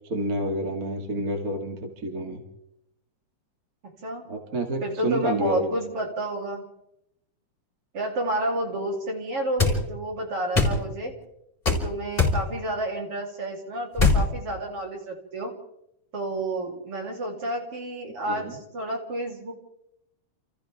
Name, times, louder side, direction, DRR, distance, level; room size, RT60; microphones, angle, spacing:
voice 1, 0.1-2.4 4.3-5.7 18.3-18.5, right 1 dB, 30° right, 2 dB, 2.5 m, -29 dB
voice 2, 4.8-6.7 7.9-11.1 11.7-15.5 16.1-19.5, right 1 dB, 45° right, 0 dB, 4.5 m, -30 dB
sound 1, 9.6-9.8 10.6-10.8 11.7-11.8 12.2-12.4 14.0-14.2, left 3 dB, 15° left, 4.5 m, -20 dB
29.0 x 28.5 x 3.7 m, 0.83 s
omnidirectional pair, 3.6 m